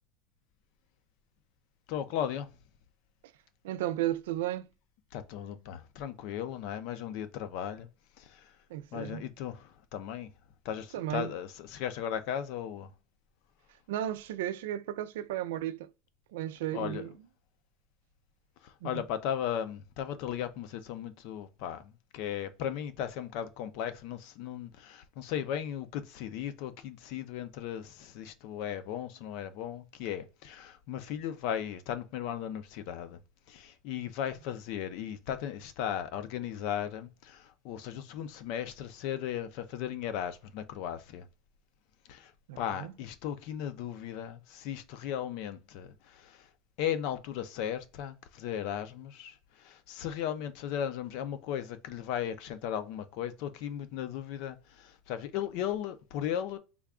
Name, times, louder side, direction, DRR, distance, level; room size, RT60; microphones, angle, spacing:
voice 1, 1.9-2.5 5.1-7.9 8.2-8.5 8.9-10.3 10.6-12.9 16.7-17.0 18.6-33.2 33.5-41.3 42.1-42.3 42.6-46.5 46.8-56.6, left 9 dB, 50° left, 0.5 m, -36 dB
voice 2, 3.6-4.7 8.7-9.3 10.9-11.3 13.9-15.9 16.3-17.1 18.8-19.0 42.5-42.9, right 12 dB, 90° right, 0.4 m, -34 dB
3.4 x 2.3 x 3.6 m
supercardioid pair, 170°, 0 cm